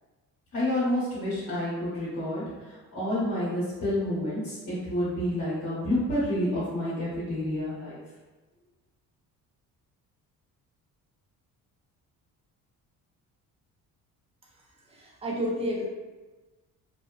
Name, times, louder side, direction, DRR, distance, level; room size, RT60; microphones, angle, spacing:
voice 1, 0.5-8.0, left 1 dB, 55° left, -11 dB, 1.0 m, -29 dB
voice 2, 15.0-15.9, equal, 15° right, -3 dB, 0.5 m, -30 dB
2.6 x 2.1 x 2.3 m, 1.2 s
cardioid pair, 125°, 34 cm